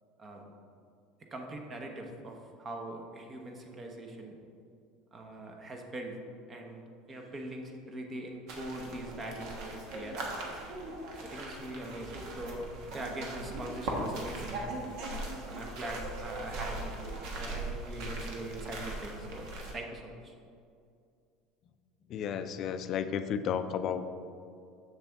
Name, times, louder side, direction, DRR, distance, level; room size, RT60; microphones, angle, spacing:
voice 1, 0.2-0.5 1.3-4.4 5.1-6.2 6.5-6.8 7.1-10.3 11.2-19.5 19.7-20.3, right 1 dB, 25° right, 2 dB, 0.9 m, -42 dB
sound 1, 8.5-19.7, right 2 dB, 60° right, 1.3 m, -39 dB
voice 2, 22.1-24.0, left 8 dB, 45° left, 9 dB, 0.4 m, -33 dB
7.1 x 6.7 x 3.5 m, 2.4 s
cardioid pair, 140°, 0 cm